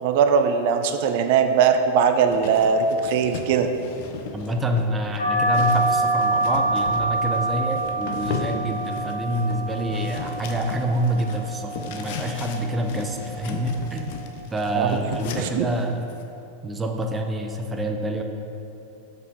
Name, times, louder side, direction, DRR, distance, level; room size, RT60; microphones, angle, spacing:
voice 1, 0.0-3.7 14.7-15.0 15.4-15.7, right 6 dB, 50° right, 7 dB, 0.5 m, -20 dB
sound 1, 2.3-16.2, left 5 dB, 50° left, 0.7 m, -36 dB
voice 2, 4.3-14.1 14.5-16.0 16.6-18.2, equal, 15° right, 3 dB, 0.7 m, -27 dB
sound 2, 5.2-14.2, right 2 dB, 80° left, 1.5 m, -27 dB
7.5 x 5.7 x 4.6 m, 2.9 s
figure-of-eight pair, 90°, 0 cm